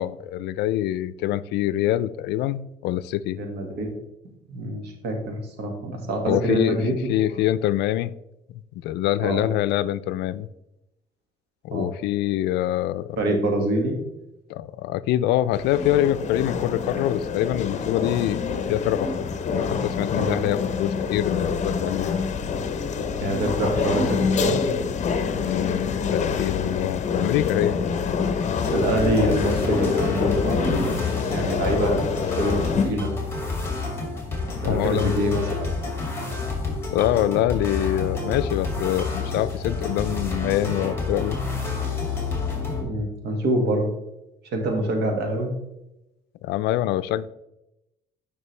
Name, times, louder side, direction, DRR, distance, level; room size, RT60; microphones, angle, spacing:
voice 1, 0.0-3.4 6.3-6.8 7.1-8.1 8.8-10.5 11.6-13.2 14.5-18.4 18.7-19.1 19.5-22.2 25.4-28.1 34.7-35.1 36.9-41.4 46.4-47.3, left 13 dB, 80° left, 0.4 m, -25 dB
voice 2, 3.4-3.9 4.5-6.9 7.3-7.4 9.2-9.4 11.7-11.9 13.2-14.0 20.2-20.4 23.2-24.6 28.7-31.0 31.3-33.2 34.6-35.7 42.8-43.9 44.5-45.5, right 1 dB, 75° right, 1.9 m, -25 dB
sound 1, 15.5-32.9, left 5 dB, 45° left, 0.8 m, -26 dB
sound 2, 28.6-42.8, left 3 dB, 15° left, 2.2 m, -29 dB
9.6 x 5.4 x 3.3 m
cardioid pair, 110°, 17 cm